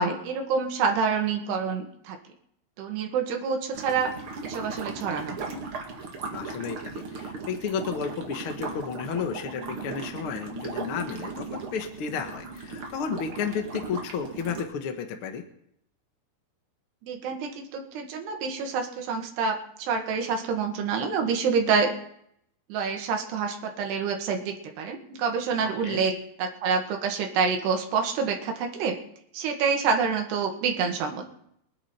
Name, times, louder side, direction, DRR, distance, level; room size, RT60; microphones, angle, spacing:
voice 1, 0.0-2.2 2.8-4.1 4.4-5.6 17.0-21.9 22.7-29.0 29.3-31.2, right 5 dB, 80° right, 3 dB, 3.8 m, -27 dB
sound 1, 3.7-14.6, right 4 dB, 45° right, 2.0 m, -37 dB
voice 2, 6.3-15.4 25.6-26.0, left 6 dB, 60° left, 5 dB, 1.4 m, -32 dB
23.5 x 10.0 x 4.4 m, 0.72 s
omnidirectional pair, 4.7 m